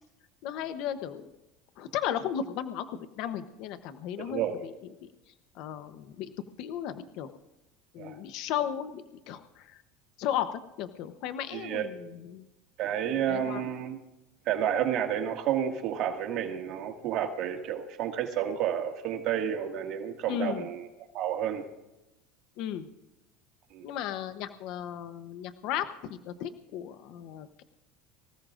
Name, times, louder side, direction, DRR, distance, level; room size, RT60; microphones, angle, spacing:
voice 1, 0.4-1.3 1.8-4.7 5.0-5.1 5.5-6.3 6.6-7.3 7.9-9.8 10.2-12.4 13.1-13.6 20.3-20.7 22.6-22.9 23.8-27.6, left 10 dB, 60° left, 10 dB, 0.8 m, -35 dB
voice 2, 4.2-4.6 8.0-8.1 11.5-11.9 12.8-14.0 14.5-20.9 21.1-21.7 23.7-23.8, right 9 dB, 55° right, 3 dB, 1.9 m, -30 dB
24.5 x 15.5 x 2.5 m, 0.96 s
supercardioid pair, 115°, 0 cm